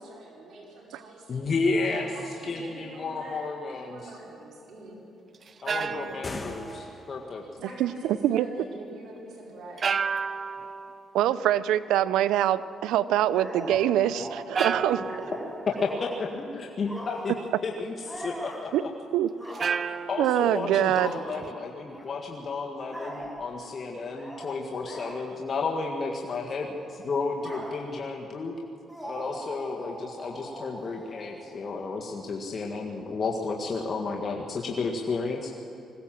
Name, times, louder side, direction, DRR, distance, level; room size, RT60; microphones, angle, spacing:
voice 1, 0.0-5.0 7.6-9.9, right 2 dB, 70° right, -2 dB, 4.8 m, -45 dB
voice 2, 1.3-2.1 2.4-4.1 5.6-7.4 15.8-17.3 17.6-18.7 19.8-28.5 29.1-35.5, left 4 dB, 45° left, 0 dB, 1.7 m, -32 dB
sound 1, 1.9-2.2 5.3-7.3 9.8-11.1 13.7-13.8 14.5-16.2 19.5-21.5, right 5 dB, 45° right, 0.7 m, -33 dB
sound 2, 6.1-7.4, left 2 dB, 25° left, 1.3 m, -40 dB
voice 3, 11.1-15.0 18.7-18.8 19.1-19.3 20.2-21.1, right 12 dB, 90° right, 16 dB, 0.5 m, -24 dB
sound 3, 13.3-16.4 16.8-17.5 18.0-18.7 19.3-20.0 21.0-21.2 21.9-22.0 22.8-23.5 24.1-24.5 24.8-25.2 25.8-26.0 26.2-28.1 28.9-32.2, equal, 5° right, 5.8 m, -41 dB
20.5 x 17.0 x 7.6 m, 2.8 s
cardioid pair, 90°, 0 cm